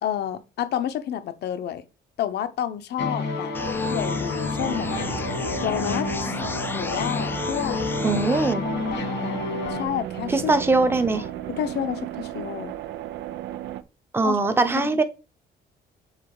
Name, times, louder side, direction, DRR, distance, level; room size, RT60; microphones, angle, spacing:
voice 1, 0.0-1.8 2.2-3.5 3.9-4.9 5.6-6.3 6.7-7.8 8.6-9.4 9.7-10.5 11.1-11.2 11.5-12.7 14.2-14.4, left 10 dB, 65° left, 0.9 m, -30 dB
sound 1, 3.0-9.9, left 3 dB, 85° left, 2.1 m, -29 dB
sound 2, 3.5-8.5, left 3 dB, 10° left, 0.4 m, -34 dB
sound 3, 4.6-13.8, right 12 dB, 90° right, 0.6 m, -35 dB
voice 2, 8.0-8.7 10.3-11.2 14.1-15.0, right 3 dB, 10° right, 0.8 m, -21 dB
7.5 x 4.1 x 4.8 m
cardioid pair, 145°, 18 cm